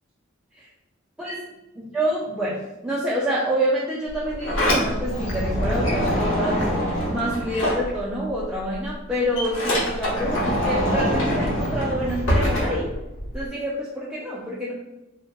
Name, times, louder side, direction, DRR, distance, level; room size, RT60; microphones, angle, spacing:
voice 1, 1.8-6.8 7.1-12.9 13.3-14.7, right 1 dB, 5° right, -7 dB, 0.3 m, -27 dB
Sliding door, 4.1-8.4 8.7-13.5, equal, 85° left, 0.8 m, -24 dB
3.2 x 2.1 x 2.3 m, 1.0 s
head